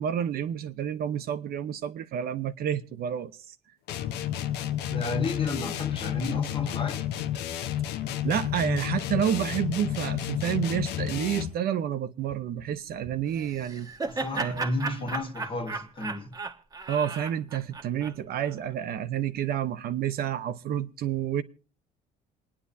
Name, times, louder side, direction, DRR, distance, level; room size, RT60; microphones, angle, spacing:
voice 1, 0.0-3.6 8.2-13.9 14.3-14.7 16.9-21.4, right 9 dB, 65° right, 0.9 m, -29 dB
sound 1, 3.9-11.6, left 11 dB, 80° left, 0.9 m, -31 dB
voice 2, 4.8-7.0 14.0-16.3, left 2 dB, 30° left, 1.6 m, -32 dB
Laughter, 13.3-18.5, right 4 dB, 20° right, 1.1 m, -35 dB
28.5 x 9.8 x 2.7 m
cardioid pair, 110°, 17 cm